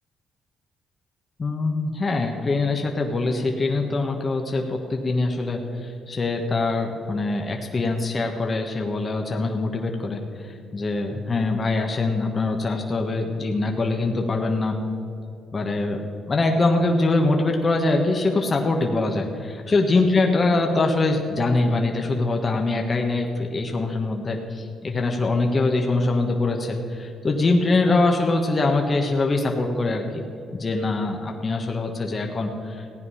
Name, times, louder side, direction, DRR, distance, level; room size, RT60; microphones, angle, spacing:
voice 1, 1.4-14.8 15.5-16.0 16.3-30.2 30.5-32.9, left 2 dB, 35° left, 2 dB, 1.3 m, -23 dB
16.0 x 9.4 x 5.7 m, 2.7 s
cardioid pair, 90°, 0 cm